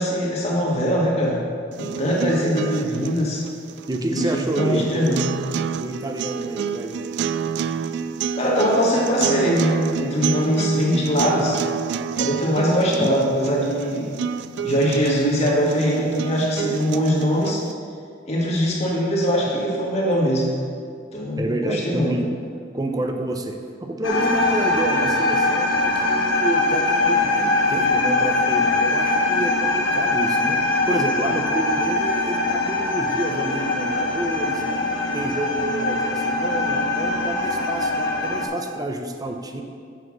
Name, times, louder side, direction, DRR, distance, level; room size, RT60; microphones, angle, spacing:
voice 1, 0.0-1.4 1.8-3.4 4.1-5.3 8.3-11.6 12.2-14.1 14.6-17.6 18.3-20.5 21.1-22.1, equal, 35° left, -4 dB, 1.9 m, -22 dB
sound 1, 1.7-17.7, right 7 dB, 60° right, 0.3 m, -29 dB
voice 2, 2.2-2.6 3.9-5.2 5.8-7.1 13.0-13.1 21.4-22.3 22.7-30.6 30.9-34.6 35.1-39.6, right 1 dB, 20° right, 4 dB, 0.7 m, -29 dB
sound 2, 24.0-38.5, left 2 dB, 90° left, 1.1 m, -22 dB
7.9 x 5.7 x 6.3 m, 2.3 s
head